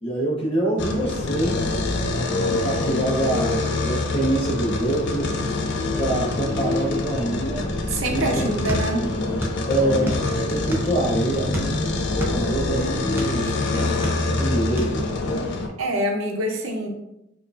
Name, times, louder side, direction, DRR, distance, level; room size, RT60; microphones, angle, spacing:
voice 1, 0.0-1.6 2.4-5.4 5.9-7.8 8.1-8.6 9.7-11.8 12.3-13.5 14.4-15.1, right 1 dB, 25° left, -3 dB, 0.8 m, -25 dB
sound 1, 0.8-15.7, left 2 dB, 55° left, 0.4 m, -25 dB
voice 2, 7.9-9.2 13.7-13.9 15.8-16.9, right 1 dB, 75° right, 2 dB, 0.6 m, -25 dB
sound 2, 8.7-9.6 9.9-11.0 11.5-13.4 13.8-14.5 14.8-15.0, equal, 10° right, 0.4 m, -29 dB
4.4 x 2.3 x 2.4 m, 0.85 s
head